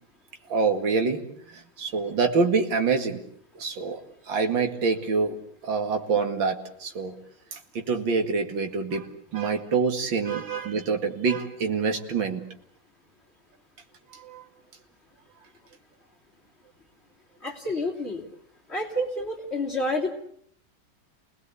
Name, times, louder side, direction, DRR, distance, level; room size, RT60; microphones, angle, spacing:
voice 1, 0.5-1.3 1.8-3.2 3.6-4.0 4.3-7.1 7.5-9.1 9.3-12.4 14.1-14.4, right 4 dB, 65° right, 5 dB, 2.8 m, -26 dB
voice 2, 17.4-18.2 18.7-20.1, left 1 dB, 30° left, -1 dB, 3.4 m, -29 dB
29.5 x 19.5 x 8.3 m, 0.67 s
omnidirectional pair, 2.2 m